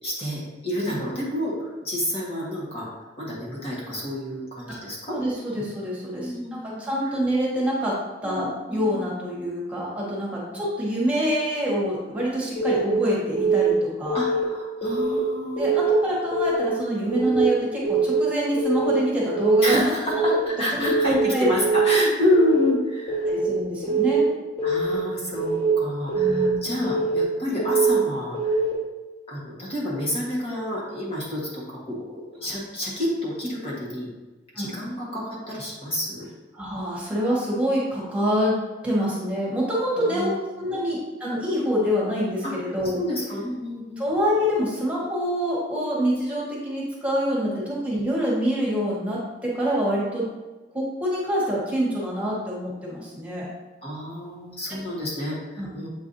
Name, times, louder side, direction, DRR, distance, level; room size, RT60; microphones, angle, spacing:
voice 1, 0.0-2.9 3.2-5.2 5.5-5.6 6.2-7.2 8.2-9.1 10.5-10.6 14.1-15.8 17.2-17.4 19.6-23.3 24.6-28.6 29.3-34.1 34.5-36.3 39.9-40.4 40.7-40.8 42.4-44.0 47.4-47.6 53.8-55.9, left 1 dB, 35° left, -5 dB, 1.5 m, -29 dB
voice 2, 5.1-7.9 8.2-14.2 15.6-19.8 20.2-20.3 20.8-21.5 23.2-24.3 26.1-26.7 34.5-34.7 36.5-38.6 38.8-43.0 44.0-50.2 50.7-53.5 54.7-54.8 55.6-55.9, equal, 10° right, -6 dB, 1.5 m, -26 dB
Keyboard (musical) / Alarm, 12.6-12.9 13.3-13.7 14.1-14.4 14.8-15.2 15.6-15.9 16.3-16.7 17.1-17.4 17.8-18.2 18.6-18.9 19.3-19.7 20.1-20.5 20.8-21.2 21.6-22.0 22.3-22.7 23.1-23.5 23.8-24.2 24.6-25.0 25.3-25.7 26.1-26.5 26.8-27.2 27.6-28.0 28.3-28.7, right 3 dB, 10° left, 1.2 m, -23 dB
7.8 x 4.7 x 2.7 m, 1.2 s
head